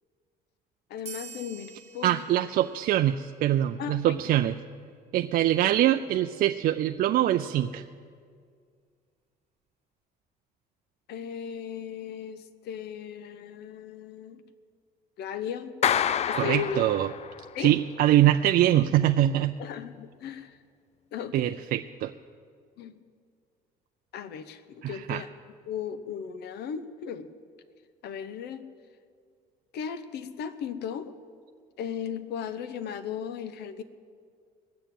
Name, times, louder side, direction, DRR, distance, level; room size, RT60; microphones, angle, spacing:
voice 1, 0.9-2.4 3.8-4.2 11.1-14.4 15.2-15.7 16.3-16.8 17.5-17.8 19.6-20.6 21.1-21.6 22.8-22.9 24.1-25.3 25.7-27.3 28.0-28.7 29.7-31.2 31.8-33.8, left 8 dB, 75° left, 12 dB, 0.9 m, -36 dB
sound 1, 1.0-4.1, right 9 dB, 40° right, 1.5 m, -48 dB
voice 2, 2.0-4.5 5.1-7.8 16.3-17.1 17.6-19.6 21.3-22.1 24.8-25.2, right 12 dB, 60° right, 7 dB, 0.4 m, -23 dB
Clapping, 15.8-17.6, left 9 dB, 40° left, 0.4 m, -28 dB
19.0 x 6.9 x 9.1 m, 2.1 s
cardioid pair, 110°, 17 cm